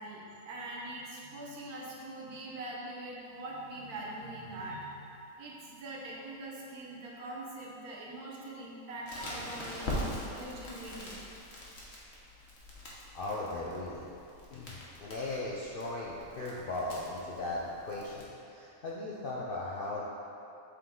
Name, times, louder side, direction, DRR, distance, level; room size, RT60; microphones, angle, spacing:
voice 1, 0.0-11.2, right 1 dB, 85° right, -3 dB, 1.4 m, -43 dB
Crackle, 9.1-18.2, left 1 dB, 50° left, 1.2 m, -43 dB
voice 2, 13.1-14.1 14.5-20.1, left 2 dB, 65° left, -5 dB, 0.5 m, -37 dB
7.4 x 3.8 x 3.7 m, 2.7 s
omnidirectional pair, 1.6 m